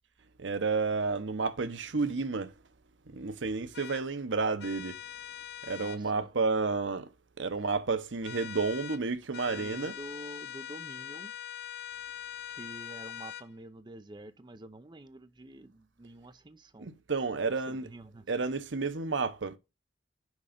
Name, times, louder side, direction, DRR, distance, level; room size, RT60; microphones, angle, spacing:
voice 1, 0.4-2.6 3.1-5.0 5.6-7.1 7.4-10.0 16.8-17.9 18.3-19.6, right 4 dB, 80° right, 0.8 m, -31 dB
sound 1, 3.7-4.0 4.6-6.0 8.2-9.0 9.3-13.5, left 11 dB, 60° left, 0.5 m, -43 dB
voice 2, 5.8-6.3 9.5-11.3 12.5-16.9 17.7-18.3, right 2 dB, 25° right, 0.6 m, -48 dB
6.3 x 5.2 x 5.0 m
head